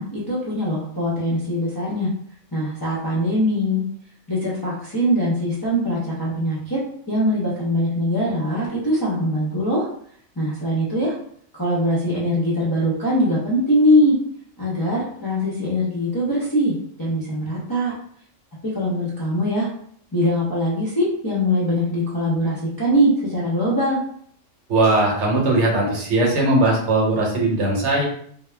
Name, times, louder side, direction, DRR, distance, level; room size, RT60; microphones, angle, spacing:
voice 1, 0.0-2.1 2.5-3.8 4.3-6.8 7.1-9.9 10.4-11.1 11.5-14.2 14.6-17.9 18.7-19.7 20.1-24.0, equal, 30° left, -7 dB, 0.4 m, -22 dB
voice 2, 24.7-28.0, right 2 dB, 65° right, -1 dB, 1.0 m, -19 dB
2.3 x 2.1 x 3.2 m, 0.63 s
omnidirectional pair, 1.3 m